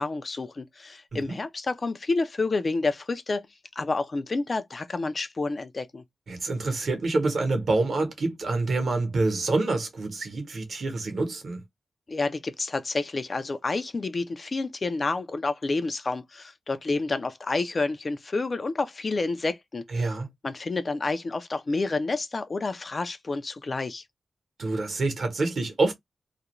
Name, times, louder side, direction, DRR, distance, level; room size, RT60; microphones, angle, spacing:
voice 1, 0.0-3.5 3.8-6.0 12.1-20.2 20.4-24.0, left 3 dB, 35° left, 0.3 m, -29 dB
voice 2, 6.3-11.6 19.9-20.3 24.6-25.9, right 3 dB, 55° right, 0.9 m, -27 dB
2.4 x 2.1 x 2.9 m
wide cardioid pair, 135°, 0 cm